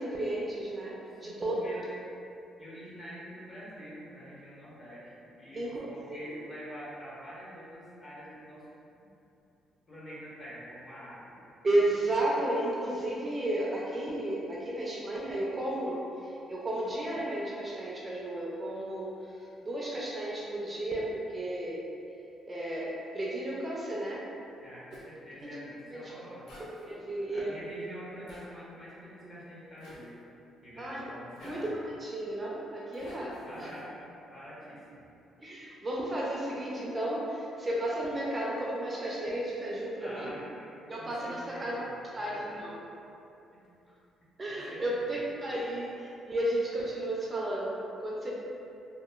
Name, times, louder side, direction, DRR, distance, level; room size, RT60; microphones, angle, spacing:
voice 1, 0.0-1.0 1.2-1.5 5.6-5.8 11.6-19.1 19.6-21.8 22.5-24.2 25.9-26.0 26.9-27.6 30.8-31.1 31.4-33.7 35.4-40.3 40.9-41.8 42.1-42.8 44.4-48.3, right 1 dB, 25° right, -5 dB, 0.4 m, -33 dB
voice 2, 1.1-1.9 2.6-8.7 9.9-11.4 24.6-26.6 27.3-30.1 30.6-31.7 33.4-33.9 34.3-35.1 40.0-42.6 43.5-43.6 44.4-45.4, equal, 35° left, -8 dB, 0.8 m, -46 dB
Zipper (clothing), 24.9-25.1 26.5-26.9 28.3-28.5 29.8-30.1 31.4-31.7 32.9-33.8, left 1 dB, 75° left, 0.6 m, -48 dB
2.9 x 2.1 x 2.3 m, 2.7 s
cardioid pair, 110°, 0 cm